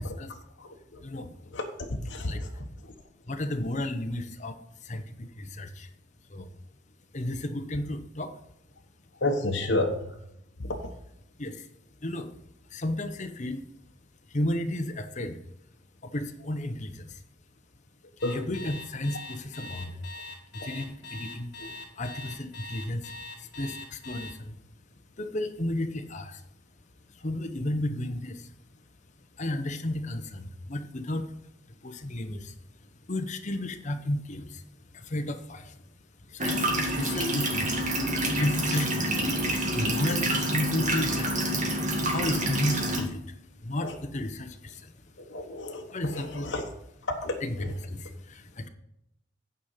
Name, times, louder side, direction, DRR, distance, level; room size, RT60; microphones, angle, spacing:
voice 1, 1.0-1.3 2.2-2.4 3.3-4.6 4.8-5.9 6.3-6.5 7.1-8.3 11.4-11.7 12.0-12.3 12.7-13.7 14.3-15.4 16.0-17.2 18.3-20.0 20.5-21.5 22.0-23.1 23.4-24.6 25.2-26.4 27.1-28.5 29.4-31.3 31.8-32.5 33.1-34.6 34.9-35.7 36.3-36.7 37.0-37.9 38.4-39.4 39.7-41.6 42.0-43.2 43.6-44.9 45.9-46.5 47.4-48.7, left 1 dB, 40° left, 6 dB, 0.9 m, -33 dB
voice 2, 2.1-2.5 9.2-10.0 10.6-10.9 18.2-18.4 43.8-43.9 45.2-46.6 47.2-47.7, left 2 dB, 70° left, 0 dB, 1.1 m, -30 dB
Alarm, 18.2-24.3, left 3 dB, 55° left, 2.8 m, -42 dB
sound 1, 36.4-43.0, right 1 dB, 40° right, 1.8 m, -27 dB
9.3 x 5.1 x 5.6 m, 0.79 s
head